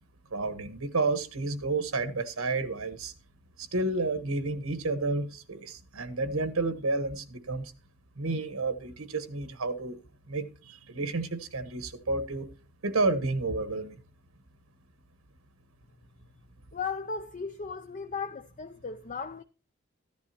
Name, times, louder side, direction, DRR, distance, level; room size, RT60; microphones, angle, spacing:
voice 1, 0.3-3.1 3.7-7.7 8.2-10.0 10.3-12.5 12.8-13.9, right 3 dB, 85° right, 1.2 m, -30 dB
voice 2, 16.7-19.4, left 5 dB, 35° left, 0.5 m, -36 dB
14.0 x 11.0 x 2.8 m
head